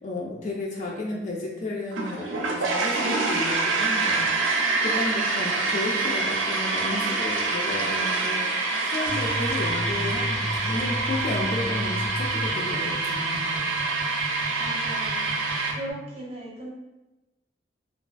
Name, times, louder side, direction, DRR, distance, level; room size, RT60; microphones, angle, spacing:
voice 1, 0.0-8.5 8.9-13.6, left 2 dB, 40° left, -2 dB, 0.3 m, -33 dB
sound 1, 1.9-15.7, right 3 dB, 90° right, 0.4 m, -26 dB
sound 2, 9.1-15.9, equal, 85° left, 1.2 m, -34 dB
voice 2, 14.6-15.3 15.7-16.7, right 1 dB, 35° right, -4 dB, 0.5 m, -37 dB
2.4 x 2.3 x 2.4 m, 1.0 s
head